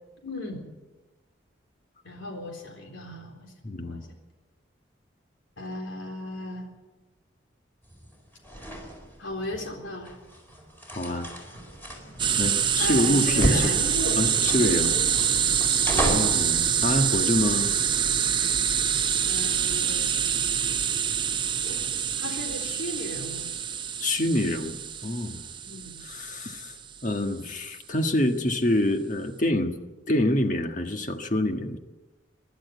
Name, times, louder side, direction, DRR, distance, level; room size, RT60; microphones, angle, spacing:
voice 1, 0.2-0.6 2.0-3.5 3.8-4.1 5.6-6.7 9.2-10.2 12.8-14.2 14.4-15.0 15.9-16.1 19.2-20.1 21.6-23.5 25.6-26.0, left 1 dB, 80° left, 3 dB, 3.8 m, -35 dB
voice 2, 3.6-4.0 10.9-11.3 12.4-13.7 14.2-14.9 16.0-17.7 24.0-25.4 26.0-26.7 27.0-29.7 30.1-31.8, left 1 dB, 40° left, 5 dB, 1.6 m, -26 dB
sound 1, 7.8-16.4, right 1 dB, 10° left, 4.4 m, -33 dB
sound 2, 12.2-26.7, right 8 dB, 25° right, 0.6 m, -26 dB
24.5 x 11.5 x 9.4 m, 1.2 s
head